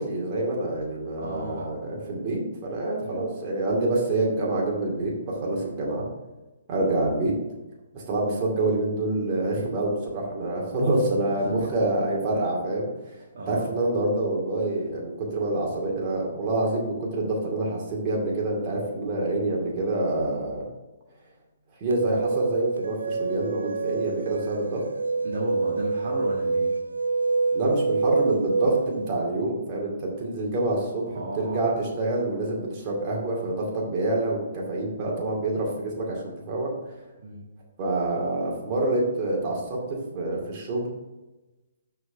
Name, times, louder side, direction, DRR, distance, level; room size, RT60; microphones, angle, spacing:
voice 1, 0.0-6.1 6.7-7.3 7.9-12.9 13.5-20.6 21.8-24.8 27.5-31.0 31.3-36.7 37.8-39.8 40.1-40.9, right 2 dB, 35° right, -3 dB, 2.3 m, -27 dB
voice 2, 1.2-1.8 3.0-3.2 6.9-7.1 11.4-11.7 13.3-13.6 25.2-26.8 31.0-31.6 37.2-37.5, right 1 dB, 60° right, -4 dB, 1.5 m, -34 dB
sound 1, 21.9-29.1, right 3 dB, 90° right, 0.4 m, -26 dB
6.5 x 4.6 x 5.7 m, 1.1 s
hypercardioid pair, 140°, 0 cm